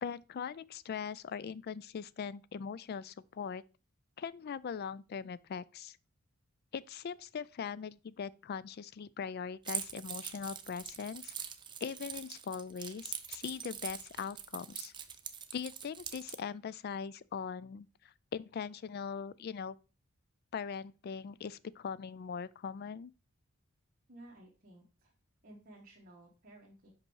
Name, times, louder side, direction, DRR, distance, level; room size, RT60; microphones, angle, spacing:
voice 1, 0.0-3.6 4.2-6.0 6.7-11.3 11.8-14.9 15.5-19.8 20.5-23.1, left 6 dB, 45° left, 0.3 m, -41 dB
Keys jangling, 9.6-16.4, right 8 dB, 20° right, 0.5 m, -43 dB
voice 2, 24.1-25.1 25.4-26.9, right 1 dB, 45° right, 1.4 m, -55 dB
5.4 x 5.3 x 4.6 m
head